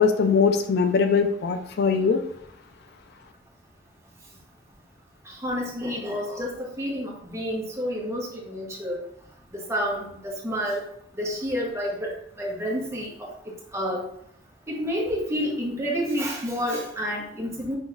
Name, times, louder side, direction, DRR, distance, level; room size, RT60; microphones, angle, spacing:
voice 1, 0.0-2.2, left 5 dB, 60° left, 7 dB, 0.4 m, -21 dB
voice 2, 5.3-9.0 9.5-10.8 11.2-13.3 13.7-14.0 14.7-17.8, equal, 15° right, -3 dB, 1.0 m, -29 dB
6.1 x 2.9 x 2.5 m, 0.70 s
head